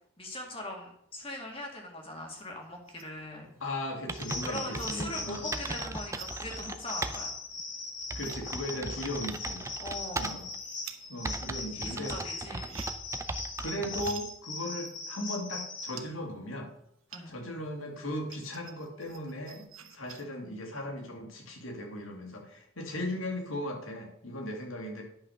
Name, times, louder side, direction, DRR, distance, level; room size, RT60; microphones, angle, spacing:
voice 1, 0.2-3.5 4.4-7.3 9.8-10.4 11.7-12.8 17.1-17.4, left 1 dB, 25° left, 1 dB, 2.2 m, -41 dB
sound 1, 2.3-3.3 3.6-17.6 17.9-20.2, right 9 dB, 85° right, 1.1 m, -51 dB
voice 2, 3.6-5.5 8.1-9.7 10.2-10.4 11.1-12.4 13.6-16.7 17.3-25.0, left 1 dB, 85° left, 2 dB, 2.5 m, -37 dB
sound 2, 3.6-3.7 4.1-7.2 7.6-7.7 8.1-10.6 11.2-14.2, right 2 dB, 15° right, 0.5 m, -38 dB
sound 3, 4.2-16.0, left 3 dB, 65° left, 4.6 m, -40 dB
10.5 x 5.8 x 6.4 m, 0.73 s
head